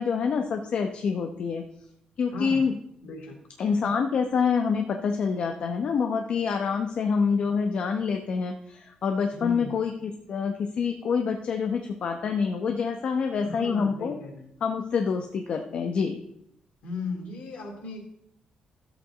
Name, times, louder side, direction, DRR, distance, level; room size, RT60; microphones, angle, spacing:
voice 1, 0.0-1.6 2.2-2.8 3.6-14.1 14.6-16.2, left 5 dB, 55° left, 4 dB, 0.9 m, -26 dB
voice 2, 2.3-2.6 3.0-3.4 9.3-9.7 13.4-14.5 16.8-18.1, left 2 dB, 70° left, 3 dB, 3.0 m, -36 dB
13.5 x 8.0 x 4.0 m, 0.74 s
cardioid pair, 145°, 2 cm